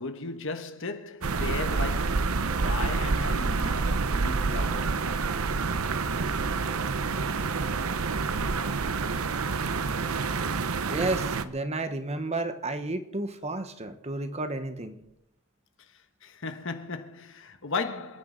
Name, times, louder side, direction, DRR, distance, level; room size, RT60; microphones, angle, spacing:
voice 1, 0.0-5.0 16.2-18.2, left 4 dB, 65° left, 1.3 m, -36 dB
sound 1, 1.2-11.4, right 4 dB, 90° right, 0.8 m, -28 dB
voice 2, 10.9-15.0, right 2 dB, 30° right, 1.2 m, -32 dB
27.5 x 9.4 x 4.0 m
head